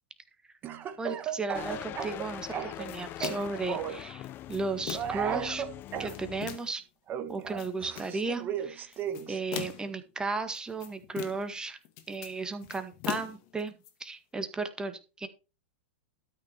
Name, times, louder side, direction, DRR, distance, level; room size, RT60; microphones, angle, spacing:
Speech / Cough, 0.6-2.9 3.2-4.0 4.9-6.1 7.1-9.4, right 10 dB, 30° right, 1.5 m, -35 dB
voice 1, 1.0-5.6 6.0-6.8 7.3-8.9 9.3-11.8 12.1-13.7 14.0-15.3, right 3 dB, 10° right, 8 dB, 1.9 m, -35 dB
sound 1, 1.5-6.6, left 13 dB, 35° left, 0.5 m, -42 dB
sound 2, 2.9-3.6 4.2-5.3 5.8-6.8 7.3-8.2 8.9-10.0 10.5-11.6 11.8-13.9, left 12 dB, 50° left, 2.0 m, -40 dB
13.0 x 5.9 x 4.5 m, 0.31 s
hypercardioid pair, 110°, 6 cm